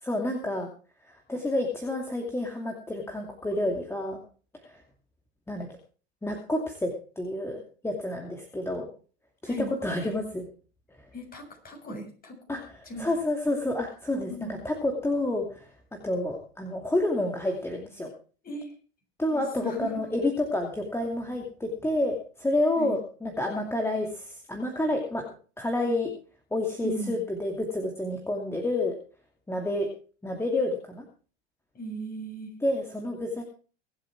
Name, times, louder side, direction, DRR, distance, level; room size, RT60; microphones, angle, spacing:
voice 1, 0.0-0.7 1.1-4.2 4.6-4.8 5.5-5.7 6.2-8.9 9.4-10.5 12.5-18.1 19.2-25.2 25.6-26.1 26.5-28.9 29.5-29.9 30.2-31.0 32.6-33.4, left 1 dB, 5° left, 1 dB, 2.6 m, -29 dB
voice 2, 11.1-13.1 14.1-14.5 18.4-18.7 19.3-19.9 22.8-22.9 26.8-27.2 31.8-32.5, right 1 dB, 25° left, 2 dB, 7.0 m, -37 dB
24.0 x 8.1 x 4.7 m, 0.40 s
hypercardioid pair, 100°, 34 cm